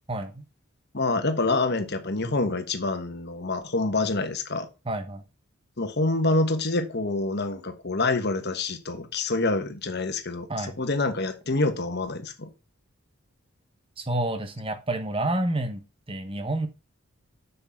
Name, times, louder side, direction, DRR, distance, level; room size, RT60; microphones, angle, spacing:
voice 1, 0.1-0.4 4.9-5.2 10.5-10.8 14.0-15.8 16.1-16.7, right 1 dB, 25° right, 1.1 m, -29 dB
voice 2, 0.9-4.7 5.8-12.5, left 2 dB, 50° left, 1.4 m, -26 dB
6.8 x 6.5 x 5.7 m
head